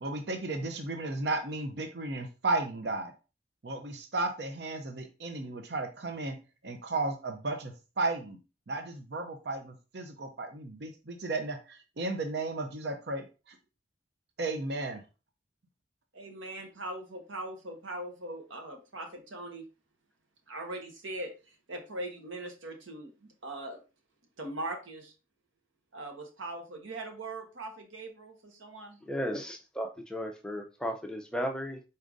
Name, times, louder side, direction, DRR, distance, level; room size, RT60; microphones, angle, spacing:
voice 1, 0.0-3.1 3.6-6.4 6.6-8.4 8.7-13.6 14.4-15.0, right 2 dB, 55° right, 5 dB, 0.6 m, -34 dB
voice 2, 16.1-19.6 20.5-23.8 24.4-25.1 25.9-29.0, right 2 dB, 85° right, 4 dB, 1.2 m, -41 dB
voice 3, 29.1-31.8, equal, 5° left, 2 dB, 0.5 m, -35 dB
4.9 x 4.2 x 2.6 m, 0.32 s
head